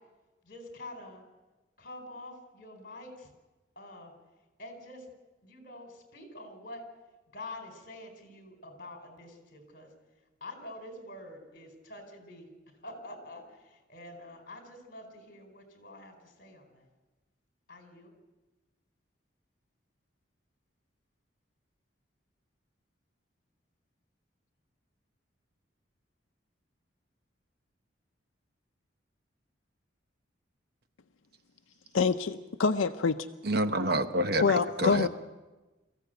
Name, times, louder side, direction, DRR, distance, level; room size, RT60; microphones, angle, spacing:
voice 1, 0.4-1.2 1.8-3.3 3.8-4.1 4.6-5.1 5.4-6.8 7.3-9.9 10.4-12.5 12.8-16.9 17.7-18.1, left 1 dB, 45° left, 4 dB, 4.2 m, -46 dB
voice 2, 31.9-33.2 34.4-35.1, left 4 dB, 80° left, 8 dB, 0.6 m, -26 dB
voice 3, 33.4-35.1, right 1 dB, 50° right, 9 dB, 0.9 m, -28 dB
22.5 x 15.0 x 8.0 m, 1.2 s
head